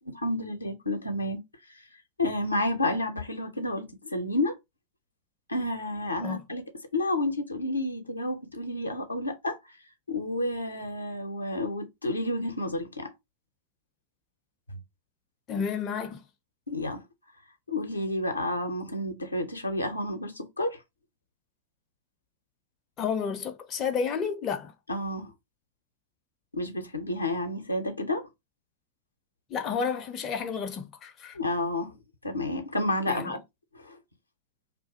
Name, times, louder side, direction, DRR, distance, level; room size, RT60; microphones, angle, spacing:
voice 1, 0.1-1.4 2.2-4.6 5.5-6.6 6.9-9.7 10.1-13.1 14.7-14.8 16.7-17.0 17.7-20.8 24.9-25.3 26.5-28.3 31.3-31.9 32.2-33.4 33.7-34.0, left 1 dB, 85° left, 0.5 m, -30 dB
voice 2, 15.5-16.2 23.0-24.7 29.5-31.4 33.1-33.3, left 6 dB, 30° left, 0.4 m, -31 dB
2.4 x 2.2 x 2.6 m
figure-of-eight pair, 90°, 0 cm